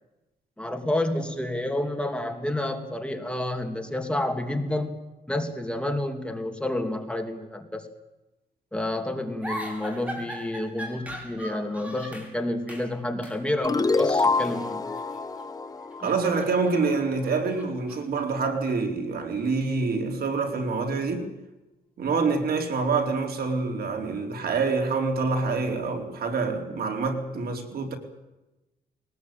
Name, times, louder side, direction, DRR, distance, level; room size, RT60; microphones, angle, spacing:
voice 1, 0.6-5.0 5.3-7.9 8.7-14.8 16.0-16.1, left 1 dB, 5° left, 2.7 m, -29 dB
sound 1, 9.4-12.3 12.7-12.9 13.2-13.4 14.3-15.5 15.8-18.2, equal, 10° right, 5.7 m, -39 dB
sound 2, 13.6-16.9, left 3 dB, 25° left, 1.2 m, -26 dB
voice 2, 16.0-21.3 22.0-28.0, right 4 dB, 75° right, 4.1 m, -26 dB
22.0 x 19.5 x 9.1 m
wide cardioid pair, 140°, 16 cm